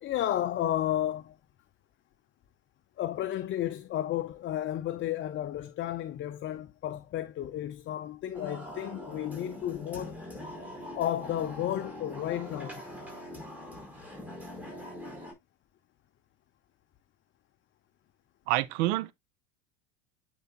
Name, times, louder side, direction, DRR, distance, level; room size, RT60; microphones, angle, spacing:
voice 1, 0.0-1.4 3.0-10.2 11.0-12.8, left 12 dB, 35° left, 0.6 m, -32 dB
sound 1, 8.3-15.3, equal, 5° right, 4.9 m, -43 dB
voice 2, 18.5-19.1, right 16 dB, 65° right, 0.8 m, -27 dB
9.0 x 4.8 x 2.6 m
hypercardioid pair, 90°, 36 cm